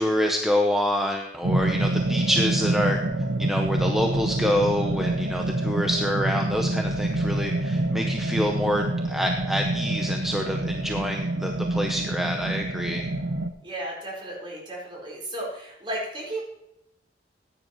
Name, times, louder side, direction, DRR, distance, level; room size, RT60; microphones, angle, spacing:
voice 1, 0.0-3.0 3.4-13.1, equal, ahead, 2 dB, 0.8 m, -26 dB
sound 1, 1.4-13.5, right 1 dB, 85° right, 0.8 m, -27 dB
voice 2, 13.6-16.4, right 1 dB, 30° right, -3 dB, 4.4 m, -34 dB
15.0 x 9.8 x 3.0 m, 0.83 s
head